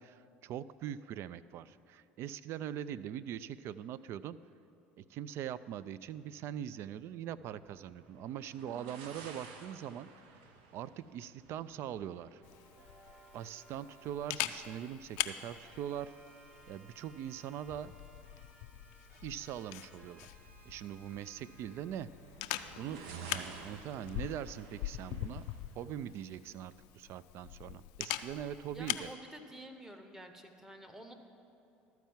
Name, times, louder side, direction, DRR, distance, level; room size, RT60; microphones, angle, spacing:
voice 1, 0.0-4.4 5.0-10.1 10.7-12.4 13.3-16.1 16.7-17.9 19.2-20.2 20.6-22.1 22.8-25.5 25.8-29.1, right 10 dB, 55° right, 16 dB, 0.3 m, -42 dB
sound 1, 7.3-27.0, right 5 dB, 75° right, 0.8 m, -55 dB
sound 2, 12.2-14.8 15.2-21.8, right 2 dB, 35° right, 1.9 m, -61 dB
Camera, 12.4-29.1, left 13 dB, 70° left, 0.4 m, -43 dB
voice 2, 28.7-31.1, right 1 dB, 10° right, 5 dB, 1.1 m, -50 dB
13.0 x 4.6 x 7.3 m, 2.7 s
hypercardioid pair, 75°, 5 cm